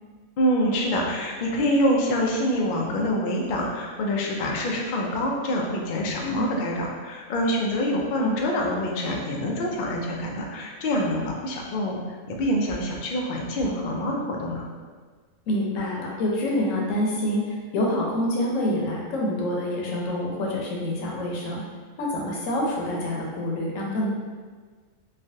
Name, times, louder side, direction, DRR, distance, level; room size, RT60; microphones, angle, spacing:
voice 1, 0.4-12.0 12.3-14.6, equal, 90° left, -1 dB, 0.4 m, -26 dB
voice 2, 15.5-21.6 22.0-24.1, left 1 dB, 75° left, -2 dB, 1.0 m, -27 dB
3.1 x 2.3 x 2.6 m, 1.5 s
omnidirectional pair, 1.4 m